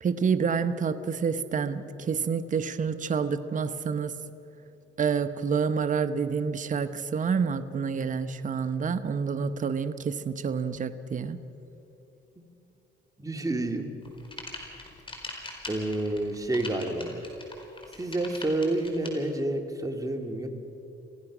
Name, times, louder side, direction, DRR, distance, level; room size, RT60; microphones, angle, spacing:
voice 1, 0.0-4.1 5.0-11.4, right 6 dB, 40° right, 10 dB, 1.0 m, -28 dB
voice 2, 13.2-13.9 15.7-17.1 17.9-20.5, right 2 dB, 15° right, 4 dB, 2.2 m, -29 dB
sound 1, 14.0-19.1, left 2 dB, 25° left, 4.6 m, -41 dB
27.0 x 16.0 x 6.1 m, 2.8 s
cardioid pair, 90°, 20 cm